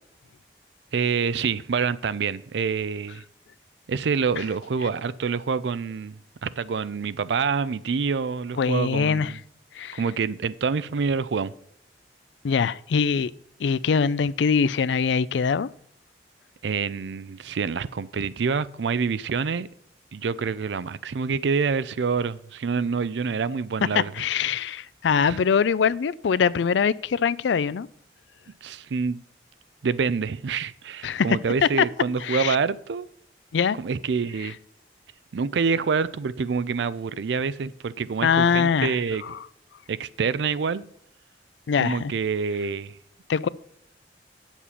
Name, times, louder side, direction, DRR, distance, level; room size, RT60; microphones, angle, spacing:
voice 1, 0.9-3.2 3.9-9.4 10.0-11.5 16.6-19.7 20.1-24.1 25.2-25.4 28.6-29.2 29.8-33.1 33.8-34.6 35.3-39.2 39.9-40.9 41.8-43.0, right 5 dB, 80° right, 0.4 m, -27 dB
voice 2, 8.6-9.3 9.7-10.0 12.4-13.3 13.6-15.7 23.9-27.9 31.0-31.4 32.2-32.6 33.5-33.8 38.2-39.4 41.7-42.1 43.3-43.5, left 6 dB, 85° left, 0.4 m, -23 dB
8.4 x 7.2 x 5.7 m
head